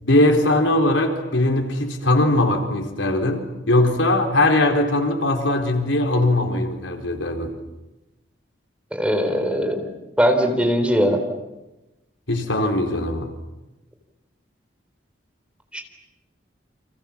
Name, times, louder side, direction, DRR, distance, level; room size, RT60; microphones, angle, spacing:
voice 1, 0.0-7.5 12.3-13.3, left 1 dB, 85° left, 4 dB, 4.1 m, -20 dB
voice 2, 8.9-9.8 10.2-11.2 15.7-15.8, equal, 5° right, 5 dB, 3.7 m, -20 dB
30.0 x 26.0 x 7.5 m, 1.0 s
head